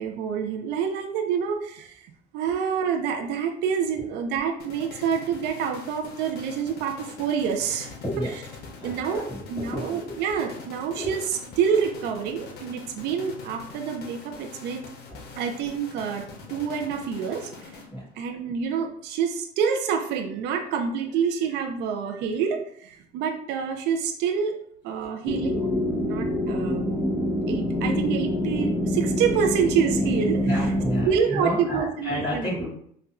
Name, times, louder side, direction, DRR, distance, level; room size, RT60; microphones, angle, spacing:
voice 1, 0.0-2.1 2.3-7.9 8.8-14.8 15.4-17.7 18.2-24.6 24.8-25.7 26.0-27.1 27.5-30.5 31.1-32.6, right 7 dB, 85° right, 4 dB, 0.4 m, -27 dB
sound 1, 4.6-18.2, left 4 dB, 75° left, 0.8 m, -44 dB
voice 2, 8.7-10.1 10.9-11.1 15.0-15.1 16.4-16.6 17.9-18.1 30.4-32.7, equal, 30° left, -12 dB, 1.5 m, -31 dB
sound 2, 25.2-31.1, left 1 dB, 15° right, 0.7 m, -26 dB
4.2 x 2.2 x 2.3 m, 0.66 s
cardioid pair, 110°, 17 cm